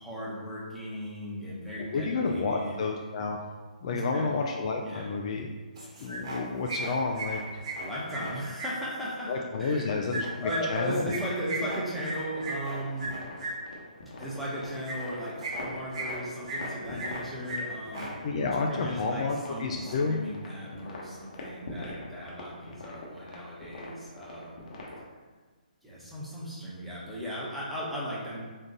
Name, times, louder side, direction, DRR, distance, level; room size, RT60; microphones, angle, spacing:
voice 1, 0.0-2.8 3.9-4.4 4.8-5.0 7.8-10.1 10.4-13.1 14.2-24.7 25.8-28.4, equal, ahead, -9 dB, 0.9 m, -37 dB
voice 2, 1.8-3.5 3.8-5.5 6.0-7.6 9.3-11.1 18.2-20.2, left 4 dB, 45° left, 2 dB, 0.3 m, -30 dB
sound 1, 5.8-6.4 6.7-8.7 10.1-13.5 14.8-15.1 15.4-16.2 16.4-17.2 17.5-17.6 17.9-18.1, right 2 dB, 40° right, 1.2 m, -35 dB
sound 2, 12.3-25.1, left 2 dB, 70° left, 1.1 m, -43 dB
3.7 x 2.5 x 3.8 m, 1.4 s
hypercardioid pair, 145°, 4 cm